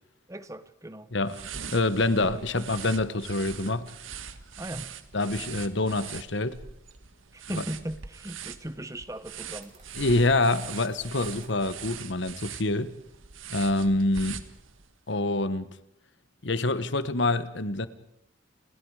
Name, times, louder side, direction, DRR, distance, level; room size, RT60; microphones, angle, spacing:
voice 1, 0.3-1.1 2.2-2.5 4.6-4.9 7.3-9.7, right 1 dB, 15° right, 12 dB, 1.2 m, -38 dB
sound 1, 1.2-14.9, right 7 dB, 90° right, 1.5 m, -42 dB
voice 2, 1.7-3.9 5.1-6.6 7.6-7.7 10.0-12.9 13.5-14.5 15.1-15.7 16.4-17.9, left 2 dB, 65° left, 14 dB, 1.3 m, -26 dB
sound 2, 9.6-11.7, right 3 dB, 35° right, 6.3 m, -56 dB
30.0 x 20.0 x 4.9 m, 0.83 s
head